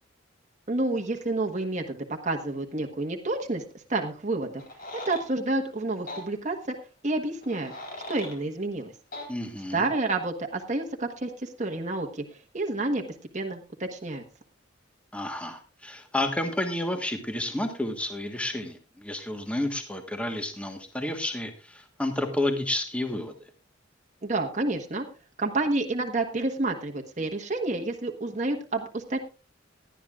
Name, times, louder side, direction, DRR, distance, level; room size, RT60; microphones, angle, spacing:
voice 1, 0.7-3.6 3.9-4.5 5.1-6.8 7.0-7.7 8.1-8.9 9.7-13.0 13.3-14.2 24.2-25.0 25.4-29.2, right 2 dB, 35° right, 2 dB, 1.3 m, -29 dB
sound 1, 4.6-5.3 6.1-6.2 7.4-8.4 9.1-9.3, left 2 dB, 45° left, 4.0 m, -39 dB
voice 2, 9.3-9.9 15.1-23.5, left 1 dB, 5° left, 5 dB, 1.4 m, -31 dB
18.5 x 11.5 x 2.5 m, 0.33 s
head